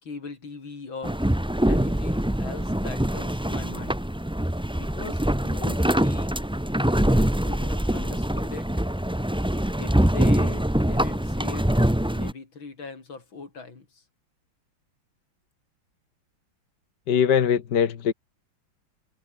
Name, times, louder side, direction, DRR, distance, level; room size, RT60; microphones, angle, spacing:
voice 1, 0.0-1.2 1.7-4.0 4.8-6.3 7.4-8.7 9.8-11.7 12.1-14.0, left 4 dB, 80° left, 4.7 m, -40 dB
sound 1, 1.0-12.3, right 1 dB, 5° right, 0.9 m, -24 dB
voice 2, 17.1-18.1, left 8 dB, 60° left, 2.0 m, -21 dB
omnidirectional pair, 2.1 m